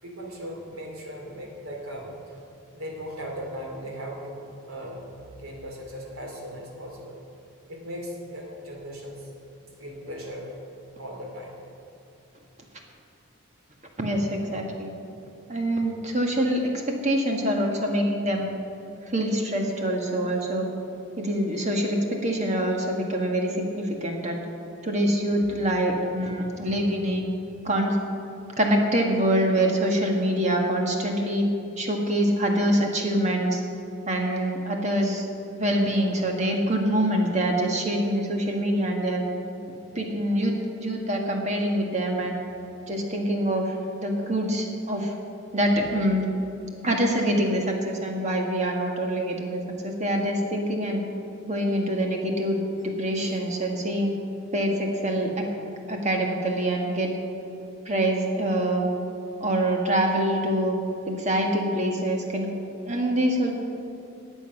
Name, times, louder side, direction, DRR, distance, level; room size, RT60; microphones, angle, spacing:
voice 1, 0.0-4.4 4.7-7.1 7.7-9.3 9.8-10.6 11.0-11.6 53.2-53.4, equal, 90° right, 0 dB, 2.9 m, -38 dB
voice 2, 14.0-14.9 15.5-16.6 16.9-18.5 19.1-20.7 21.2-24.4 24.8-27.2 27.6-28.0 28.6-31.5 31.8-33.6 34.1-35.3 35.6-39.2 39.9-40.5 40.8-42.4 42.8-43.7 44.0-45.1 45.5-46.3 46.8-51.0 51.5-54.1 54.5-55.4 55.9-57.1 57.8-58.9 59.4-60.8 61.1-62.5 62.8-63.5, right 1 dB, 35° right, 1 dB, 1.6 m, -25 dB
19.5 x 7.2 x 5.9 m, 2.7 s
head